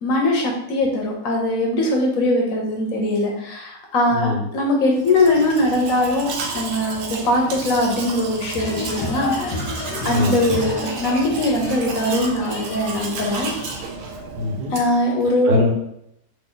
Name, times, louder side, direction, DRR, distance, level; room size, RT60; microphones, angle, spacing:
voice 1, 0.0-6.3 6.5-9.7 10.0-13.5 14.7-15.5, left 1 dB, 65° left, 0 dB, 1.1 m, -21 dB
voice 2, 4.1-4.4 10.1-10.6 14.3-14.7 15.4-15.7, left 2 dB, 80° right, -2 dB, 1.4 m, -22 dB
Domestic sounds home sounds, 5.0-15.1, right 4 dB, 65° right, 0.9 m, -32 dB
sound 1, 8.5-13.8, left 3 dB, 90° left, 1.2 m, -31 dB
3.2 x 2.6 x 3.8 m, 0.77 s
omnidirectional pair, 1.7 m